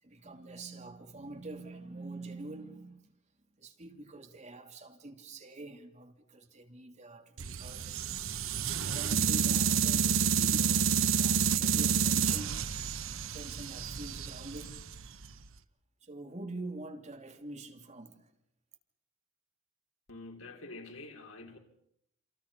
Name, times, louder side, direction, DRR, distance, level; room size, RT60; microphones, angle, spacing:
voice 1, 0.0-3.1 3.6-8.0 8.8-12.7 13.3-14.8 16.0-18.3, right 2 dB, 35° right, 3.0 m, -45 dB
sound 1, 7.4-15.5, right 7 dB, 75° right, 1.0 m, -29 dB
voice 2, 20.1-21.6, left 2 dB, 80° left, 4.9 m, -47 dB
28.0 x 27.0 x 5.5 m
head